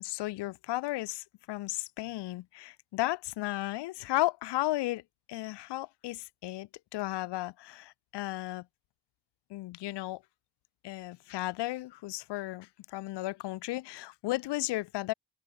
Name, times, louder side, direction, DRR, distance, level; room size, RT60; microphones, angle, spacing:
voice 1, 0.0-5.0 5.3-8.6 9.5-10.2 10.8-15.1, left 17 dB, 80° left, 0.6 m, -34 dB
supercardioid pair, 45°, 41 cm